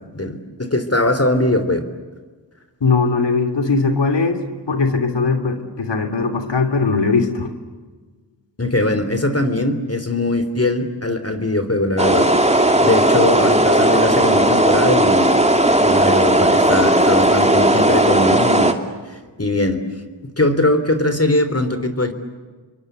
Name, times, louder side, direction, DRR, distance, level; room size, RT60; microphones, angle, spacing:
voice 1, 0.0-1.8 8.6-12.3 12.8-15.4 15.8-18.7 19.1-19.8 20.2-22.1, left 1 dB, 30° left, 10 dB, 3.5 m, -20 dB
voice 2, 2.8-4.4 4.7-7.5, left 4 dB, 65° left, 5 dB, 3.2 m, -19 dB
sound 1, 12.0-18.7, right 1 dB, 15° right, 2.7 m, -15 dB
29.0 x 23.5 x 8.2 m, 1.4 s
cardioid pair, 40°, 46 cm